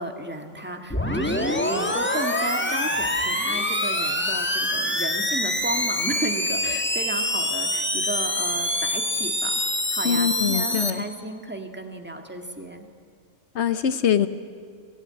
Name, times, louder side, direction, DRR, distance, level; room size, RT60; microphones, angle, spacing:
voice 1, 0.0-9.6 9.9-12.9, right 1 dB, 10° right, 4 dB, 1.7 m, -34 dB
sound 1, 0.9-10.9, left 1 dB, 10° left, 1.3 m, -25 dB
voice 2, 10.0-11.0 13.6-14.3, left 8 dB, 60° left, 13 dB, 1.0 m, -23 dB
22.0 x 17.0 x 8.9 m, 2.2 s
omnidirectional pair, 1.4 m